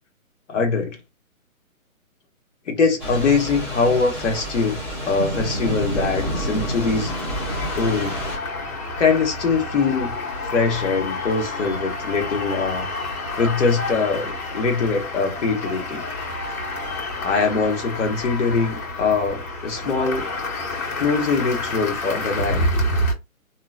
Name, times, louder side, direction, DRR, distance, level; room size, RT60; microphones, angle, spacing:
voice 1, 0.5-1.0 2.7-7.1 7.7-8.2 9.0-10.1 10.5-12.9 13.4-16.0 17.2-20.3 21.0-22.7, left 4 dB, 55° left, 1.2 m, -22 dB
Thunder / Rain, 3.0-8.4, equal, 20° left, 0.8 m, -29 dB
sound 1, 6.2-23.1, left 1 dB, 90° left, 1.8 m, -29 dB
2.9 x 2.4 x 2.4 m
hypercardioid pair, 160°, 42 cm